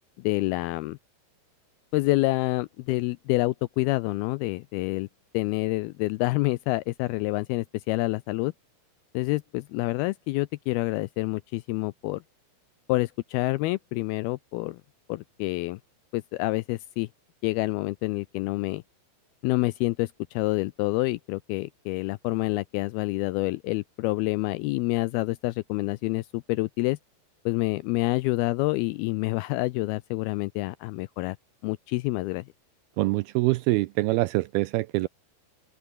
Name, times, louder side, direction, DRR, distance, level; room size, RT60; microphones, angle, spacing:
voice 1, 0.2-1.0 1.9-5.1 5.3-8.5 9.1-12.2 12.9-14.8 15.1-15.8 16.1-17.1 17.4-18.8 19.4-27.0 27.5-31.4 31.6-32.5, left 20 dB, 85° left, 2.2 m, -27 dB
voice 2, 33.0-35.1, right 20 dB, 85° right, 2.3 m, -24 dB
open air
omnidirectional pair, 4.9 m